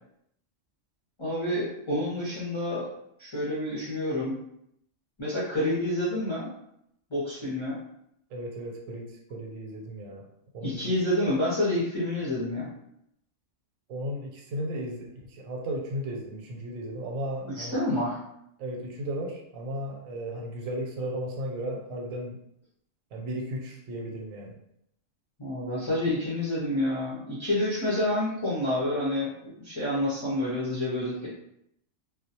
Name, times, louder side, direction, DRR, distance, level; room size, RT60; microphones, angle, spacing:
voice 1, 1.2-2.9 3.2-4.4 5.2-6.5 7.1-7.8 10.6-12.7 17.4-18.2 25.4-31.3, left 1 dB, 40° left, -9 dB, 0.4 m, -28 dB
voice 2, 8.3-10.3 10.5-10.9 13.9-17.8 18.6-22.4 23.1-24.6, equal, 85° right, 1 dB, 1.0 m, -35 dB
2.2 x 2.1 x 2.7 m, 0.76 s
omnidirectional pair, 1.3 m